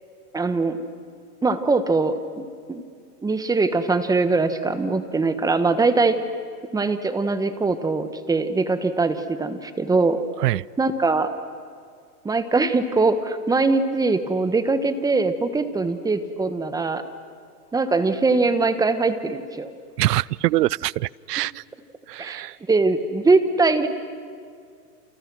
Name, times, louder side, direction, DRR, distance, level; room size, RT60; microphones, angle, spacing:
voice 1, 0.3-0.8 1.4-2.8 3.2-6.2 6.7-10.2 10.8-11.3 12.2-17.0 17.7-19.7 22.2-23.9, right 3 dB, 10° right, 10 dB, 1.2 m, -22 dB
voice 2, 20.0-21.6 22.1-22.6, right 16 dB, 80° right, 25 dB, 0.6 m, -24 dB
30.0 x 29.0 x 6.2 m, 2.2 s
hypercardioid pair, 135°, 47 cm